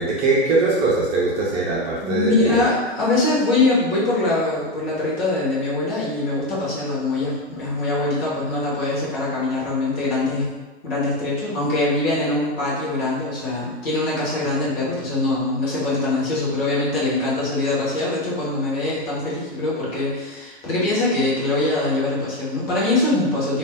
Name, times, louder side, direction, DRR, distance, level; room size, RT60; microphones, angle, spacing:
voice 1, 0.0-2.7, right 3 dB, 20° right, -6 dB, 0.5 m, -21 dB
voice 2, 2.0-10.5 10.8-23.6, left 2 dB, 55° left, -7 dB, 1.3 m, -23 dB
2.7 x 2.0 x 3.5 m, 1.2 s
hypercardioid pair, 115°, 34 cm